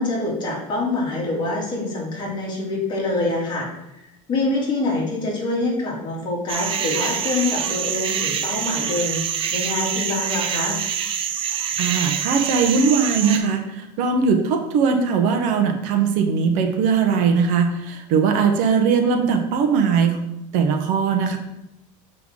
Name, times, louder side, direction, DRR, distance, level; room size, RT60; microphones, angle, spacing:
voice 1, 0.0-9.2 9.5-10.8, left 2 dB, 25° left, -3 dB, 2.6 m, -25 dB
sound 1, 6.5-13.4, right 8 dB, 30° right, 0.7 m, -25 dB
voice 2, 11.8-20.2 20.5-21.4, right 5 dB, 50° right, 5 dB, 1.0 m, -20 dB
7.5 x 5.7 x 3.7 m, 0.89 s
supercardioid pair, 150°, 17 cm